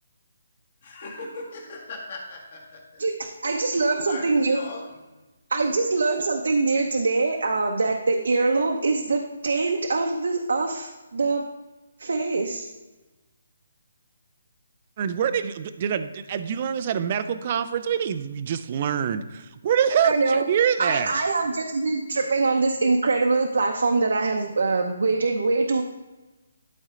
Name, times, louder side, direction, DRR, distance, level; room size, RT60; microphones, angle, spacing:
voice 1, 0.8-3.0 4.0-5.0 21.4-21.5, left 2 dB, 35° left, 0 dB, 1.7 m, -39 dB
voice 2, 3.0-4.6 5.5-11.4 12.0-12.7 19.9-20.4 20.8-25.8, right 3 dB, 70° right, 2 dB, 0.8 m, -23 dB
voice 3, 15.0-21.1, right 8 dB, 25° right, 11 dB, 0.4 m, -25 dB
12.0 x 4.3 x 3.8 m, 1.2 s
hypercardioid pair, 175°, 0 cm